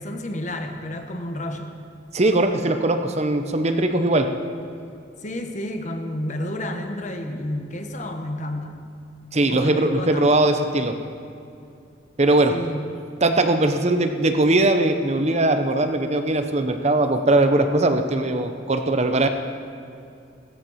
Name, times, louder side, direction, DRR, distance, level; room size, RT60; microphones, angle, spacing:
voice 1, 0.0-1.8 5.2-8.9 9.5-10.3 12.5-13.0, left 1 dB, 40° left, 5 dB, 1.3 m, -31 dB
voice 2, 2.1-4.3 9.3-11.0 12.2-12.6 13.2-19.3, right 2 dB, 35° right, 7 dB, 0.8 m, -20 dB
15.0 x 14.5 x 5.7 m, 2.5 s
head